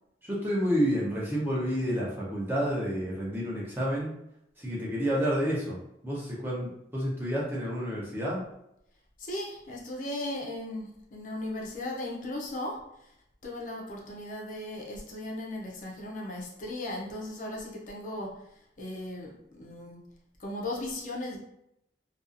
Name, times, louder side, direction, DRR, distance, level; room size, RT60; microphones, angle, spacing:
voice 1, 0.2-4.1 4.6-8.4, equal, 10° right, -6 dB, 0.6 m, -30 dB
voice 2, 9.2-13.2 13.4-20.0 20.4-21.4, left 1 dB, 45° left, -2 dB, 0.5 m, -37 dB
2.7 x 2.3 x 2.5 m, 0.80 s
head